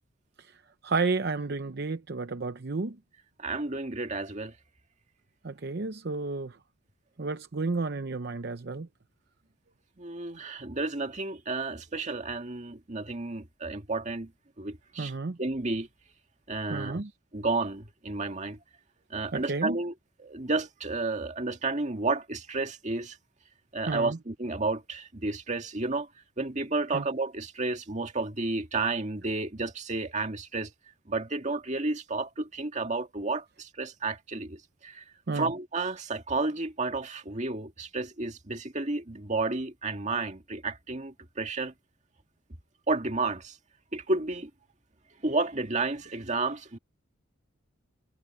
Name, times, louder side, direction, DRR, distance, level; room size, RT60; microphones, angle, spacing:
voice 1, 0.8-3.0 5.4-6.6 7.2-8.9 15.0-15.4 16.7-17.1 19.3-19.8 23.9-24.2 26.9-27.0 35.3-35.5, right 3 dB, 55° right, 0.7 m, -31 dB
voice 2, 3.4-4.5 10.0-14.3 14.6-15.1 15.4-15.9 16.5-17.0 17.3-18.6 19.1-23.2 23.7-26.1 26.4-30.7 31.1-35.0 35.3-41.7 42.9-43.6 43.9-44.5 45.2-46.8, right 3 dB, 35° right, 2.0 m, -31 dB
head